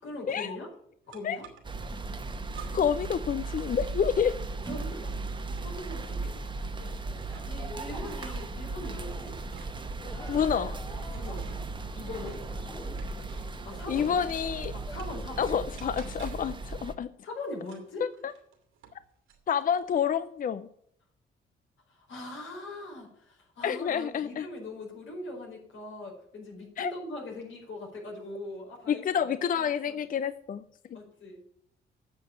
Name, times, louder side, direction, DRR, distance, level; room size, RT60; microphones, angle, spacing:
voice 1, 0.0-0.7 1.1-1.5 4.6-5.2 5.6-6.3 6.7-9.4 11.1-11.4 11.9-12.4 13.6-14.1 14.7-15.5 17.2-18.0 21.9-30.0 30.9-31.4, left 2 dB, 70° left, -2 dB, 4.8 m, -41 dB
sound 1, 1.1-1.9 2.5-3.1 3.4-7.6 8.0-13.6 14.0-15.3 15.8-16.6 17.6-19.0 19.3-19.9, right 8 dB, 90° right, 2.5 m, -52 dB
sound 2, 1.6-16.9, right 3 dB, 25° right, 1.1 m, -37 dB
voice 2, 2.7-4.3 10.3-10.7 13.9-14.7 15.4-17.1 18.2-18.3 19.5-20.7 23.6-24.5 26.8-26.9 28.9-30.6 30.9-31.0, left 8 dB, 45° left, 13 dB, 0.6 m, -28 dB
sound 3, 5.6-15.1, left 2 dB, 15° left, 1.2 m, -48 dB
9.4 x 6.7 x 8.6 m, 0.68 s
cardioid pair, 90°, 20 cm